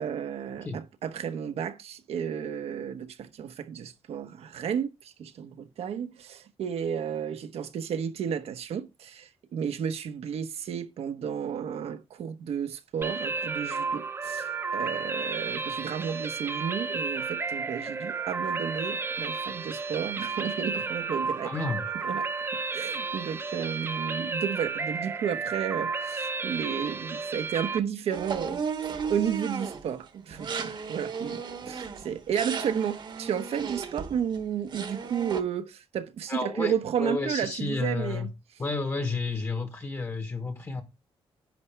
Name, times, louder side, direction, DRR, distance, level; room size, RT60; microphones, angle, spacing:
voice 1, 0.0-21.5 22.0-22.3 22.7-28.6 29.1-38.3, right 8 dB, 80° right, 1.1 m, -32 dB
sound 1, 13.0-27.8, right 4 dB, 25° right, 0.7 m, -32 dB
voice 2, 21.4-21.8 36.3-36.7 37.0-38.3 38.6-40.8, left 3 dB, 25° left, 1.1 m, -31 dB
sound 2, 28.1-29.9 30.3-34.4 34.7-35.4, right 6 dB, 45° right, 1.2 m, -35 dB
10.5 x 7.4 x 3.3 m
wide cardioid pair, 155°, 10 cm